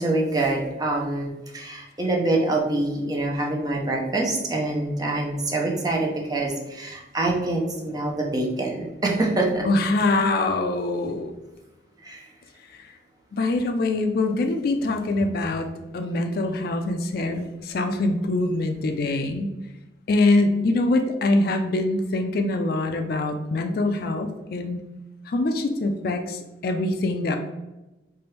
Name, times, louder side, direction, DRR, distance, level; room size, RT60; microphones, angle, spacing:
voice 1, 0.0-9.6 12.0-12.2, right 2 dB, 20° right, -1 dB, 0.7 m, -25 dB
voice 2, 9.6-11.3 12.7-12.9 13.3-19.5 20.1-24.8 25.3-27.4, left 2 dB, 60° left, 5 dB, 0.4 m, -24 dB
4.6 x 2.5 x 3.2 m, 1.0 s
head